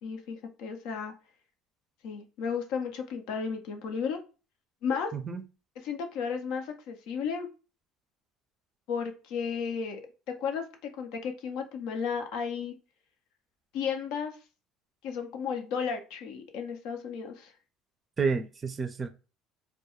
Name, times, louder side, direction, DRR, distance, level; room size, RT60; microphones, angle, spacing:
voice 1, 0.0-1.1 2.0-4.2 4.8-5.1 5.8-7.5 8.9-10.0 10.4-12.7 13.7-14.4 15.0-17.5, left 6 dB, 75° left, 0.5 m, -33 dB
voice 2, 5.1-5.4 18.2-19.1, right 5 dB, 35° right, 0.4 m, -30 dB
2.2 x 2.2 x 2.9 m
supercardioid pair, 75°, 0 cm